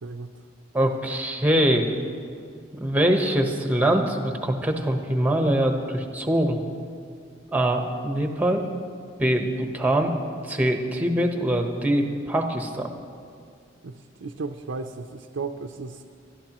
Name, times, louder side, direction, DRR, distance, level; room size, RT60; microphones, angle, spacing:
voice 1, 0.0-0.4 13.8-16.0, right 4 dB, 80° right, 4 dB, 0.6 m, -35 dB
voice 2, 0.7-1.9 2.8-6.6 7.5-8.6 9.2-10.1 10.5-12.9, right 1 dB, 10° right, 3 dB, 1.0 m, -23 dB
28.5 x 11.5 x 3.0 m, 2.3 s
head